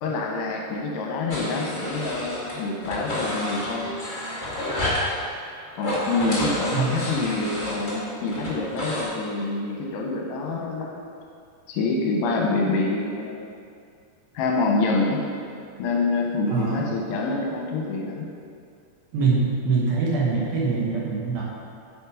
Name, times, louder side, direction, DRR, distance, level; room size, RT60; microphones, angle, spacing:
voice 1, 0.0-4.0 5.7-11.1 11.7-13.3 14.3-15.3 15.8-18.3, left 3 dB, 75° left, -1 dB, 2.8 m, -26 dB
sound 1, 1.3-2.5 2.8-5.1 5.7-9.0, left 1 dB, 30° left, 0.8 m, -30 dB
voice 2, 6.7-7.0 16.5-16.8 19.1-21.4, right 4 dB, 65° right, -4 dB, 2.8 m, -23 dB
9.6 x 8.8 x 5.0 m, 2.4 s
omnidirectional pair, 5.2 m